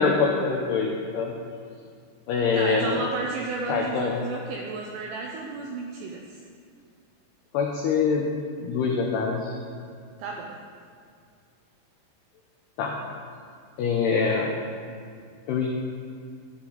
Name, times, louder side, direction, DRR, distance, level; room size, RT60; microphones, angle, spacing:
voice 1, 0.0-1.3 2.3-3.0 3.7-4.1 7.5-8.3 8.6-9.5 12.8-12.9 13.8-14.5 15.5-15.7, left 5 dB, 90° left, 0 dB, 2.3 m, -24 dB
voice 2, 2.5-6.4 10.2-10.5, right 3 dB, 85° right, 0 dB, 2.4 m, -33 dB
12.0 x 10.0 x 4.0 m, 2.2 s
omnidirectional pair, 5.8 m